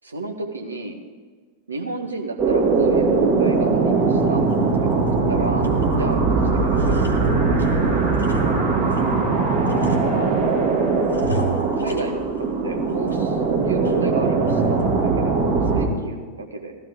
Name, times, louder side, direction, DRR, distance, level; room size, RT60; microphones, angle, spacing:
voice 1, 0.0-1.0 1.7-4.5 4.8-5.7 6.0-8.1 10.1-10.6 11.8-16.8, right 2 dB, 75° right, 2 dB, 1.5 m, -32 dB
sound 1, 2.4-15.9, right 4 dB, 35° right, 2.3 m, -20 dB
sound 2, 3.1-3.3 3.7-3.9 4.3-5.2 5.6-6.2 6.5-9.1 9.6-10.6 11.1-12.5 12.9-13.5 13.8-13.9 14.5-14.8, equal, 75° left, 1.5 m, -34 dB
15.5 x 13.0 x 3.6 m, 1.5 s
figure-of-eight pair, 90°, 0 cm